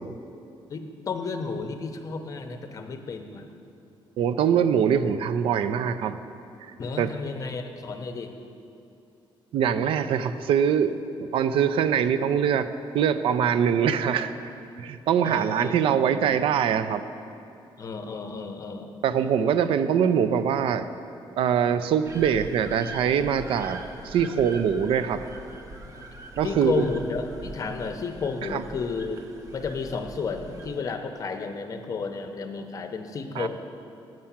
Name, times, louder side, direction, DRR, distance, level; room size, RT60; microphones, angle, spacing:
voice 1, 0.7-3.5 6.8-8.3 15.2-16.4 17.8-18.9 26.4-29.2 29.5-33.5, left 4 dB, 40° left, 6 dB, 0.7 m, -32 dB
voice 2, 4.2-6.2 7.0-7.1 9.5-12.7 12.9-14.3 14.8-17.0 19.0-20.9 21.4-25.2 26.4-26.8 28.5-28.6 33.4-33.5, right 8 dB, 75° right, 12 dB, 0.4 m, -23 dB
sound 1, 22.0-30.8, right 2 dB, 35° right, 0.6 m, -42 dB
7.6 x 5.6 x 7.2 m, 2.6 s
cardioid pair, 145°, 9 cm